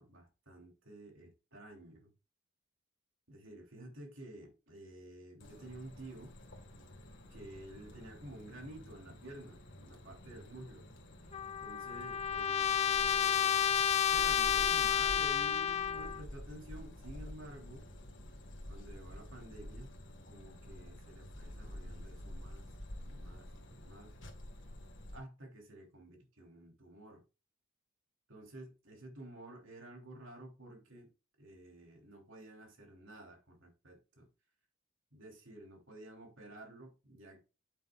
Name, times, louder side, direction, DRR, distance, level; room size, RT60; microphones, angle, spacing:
voice 1, 0.0-2.1 3.3-6.4 7.3-10.9 11.6-17.8 18.7-19.9 20.3-22.7 23.1-24.1 25.1-27.2 28.3-31.1 31.4-34.3 35.1-37.4, right 1 dB, 65° right, 3.1 m, -51 dB
sound 1, 5.4-25.2, left 1 dB, 55° left, 1.7 m, -49 dB
Trumpet, 11.3-16.2, left 9 dB, 30° left, 0.3 m, -31 dB
9.1 x 8.4 x 2.4 m
head